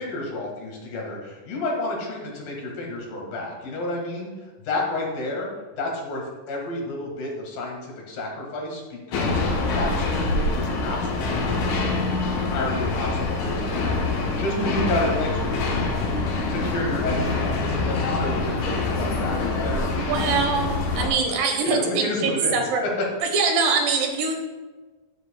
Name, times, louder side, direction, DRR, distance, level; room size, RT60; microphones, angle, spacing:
voice 1, 0.0-4.3 4.6-5.5 5.8-16.1 16.5-20.2 21.0-21.4 21.6-22.7 23.0-23.1, left 2 dB, 85° left, -1 dB, 3.6 m, -31 dB
sound 1, 9.1-21.1, left 3 dB, 70° left, 2.3 m, -25 dB
voice 2, 14.6-15.0 20.0-22.8 23.2-24.3, right 4 dB, 85° right, 3 dB, 2.9 m, -24 dB
10.5 x 10.0 x 2.3 m, 1.2 s
omnidirectional pair, 3.9 m